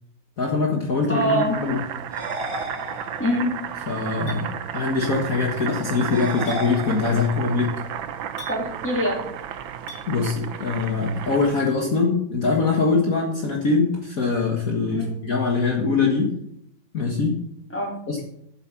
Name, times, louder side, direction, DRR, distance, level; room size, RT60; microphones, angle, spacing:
voice 1, 0.4-1.8 3.9-7.7 10.1-16.3 16.9-17.4 18.1-18.2, left 4 dB, 45° left, 0 dB, 1.9 m, -23 dB
Boiling, 1.0-11.7, right 9 dB, 90° right, 1.6 m, -33 dB
voice 2, 1.1-1.5 3.2-3.5 8.5-9.2 14.9-15.1 17.7-17.9, equal, 5° left, -1 dB, 3.2 m, -24 dB
sound 1, 2.1-3.5 6.1-7.5, right 1 dB, 55° right, 3.9 m, -34 dB
Chink clink, 4.3-4.4 6.5-6.6 8.4-8.6 9.9-10.0, left 2 dB, 65° left, 3.9 m, -39 dB
12.0 x 8.9 x 5.9 m, 0.74 s
omnidirectional pair, 2.1 m